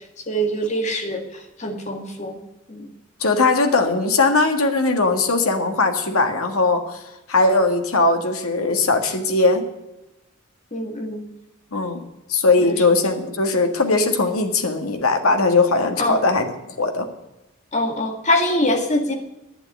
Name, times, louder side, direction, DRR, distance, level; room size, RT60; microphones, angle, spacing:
voice 1, 0.3-2.4 2.7-2.9 10.7-11.2 12.6-12.7 16.0-16.2 17.7-19.1, left 1 dB, 35° left, 3 dB, 2.2 m, -23 dB
voice 2, 3.2-7.0 7.3-9.7 11.7-12.0 12.3-16.5 16.8-17.1, left 3 dB, 90° left, 5 dB, 1.9 m, -19 dB
11.5 x 8.9 x 9.6 m, 0.94 s
head